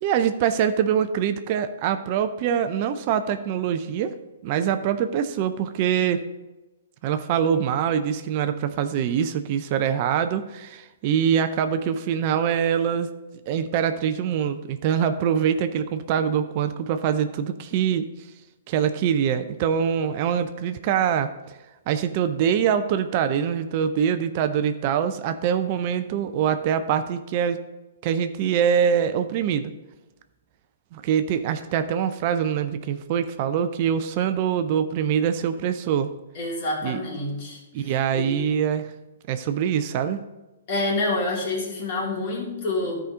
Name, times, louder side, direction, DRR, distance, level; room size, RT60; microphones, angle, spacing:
voice 1, 0.0-4.2 4.4-6.2 7.0-13.1 13.5-18.1 18.7-21.3 21.9-27.6 28.0-29.7 30.9-36.1 36.8-37.0 37.7-38.9 39.3-40.2, right 8 dB, 40° right, 10 dB, 0.6 m, -24 dB
voice 2, 36.3-38.3 40.7-43.0, left 2 dB, 50° left, -3 dB, 3.1 m, -28 dB
13.0 x 5.1 x 3.8 m, 1.1 s
figure-of-eight pair, 120°, 0 cm